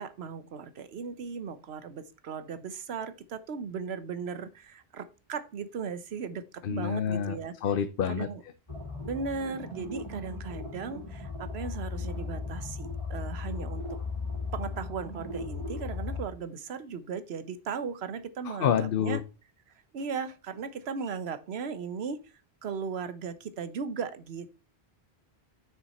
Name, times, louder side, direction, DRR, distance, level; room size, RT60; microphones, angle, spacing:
voice 1, 0.0-7.5 8.0-8.4 9.0-13.9 14.5-19.2 19.9-22.2 22.6-24.5, right 5 dB, 75° right, 1.1 m, -37 dB
voice 2, 6.6-8.3 18.5-19.2, left 8 dB, 60° left, 0.8 m, -28 dB
sound 1, 8.7-16.2, left 3 dB, 30° left, 3.2 m, -37 dB
6.7 x 6.4 x 4.1 m
omnidirectional pair, 1.1 m